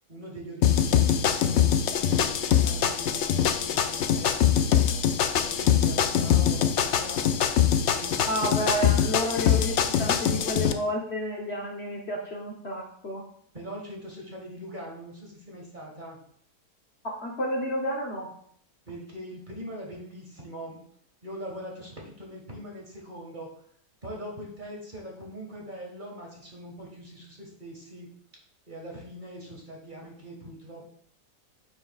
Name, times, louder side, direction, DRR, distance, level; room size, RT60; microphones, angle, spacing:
voice 1, 0.1-4.7 5.3-7.2 7.8-8.6 13.5-16.2 18.9-20.8 21.2-23.5 24.0-28.1 28.7-30.9, right 1 dB, 30° right, -1 dB, 1.8 m, -42 dB
sound 1, 0.6-10.7, left 9 dB, 75° left, 0.6 m, -23 dB
voice 2, 8.3-13.2 17.0-18.3, equal, 45° left, -1 dB, 1.1 m, -30 dB
9.1 x 6.0 x 2.4 m, 0.64 s
omnidirectional pair, 1.7 m